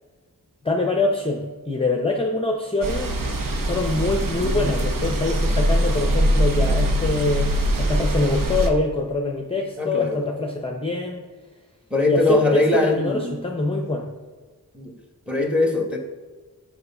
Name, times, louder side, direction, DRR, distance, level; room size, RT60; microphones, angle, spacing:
voice 1, 0.6-3.2 3.6-7.5 7.8-11.2 12.1-14.1, left 2 dB, 15° left, 1 dB, 0.8 m, -24 dB
sound 1, 2.8-8.7, equal, 65° right, 0.9 m, -22 dB
voice 2, 4.4-4.7 9.8-10.2 11.9-13.4 14.7-14.9 15.3-16.0, left 2 dB, 5° right, 3 dB, 1.3 m, -22 dB
6.7 x 4.8 x 5.5 m, 1.4 s
wide cardioid pair, 65°, 36 cm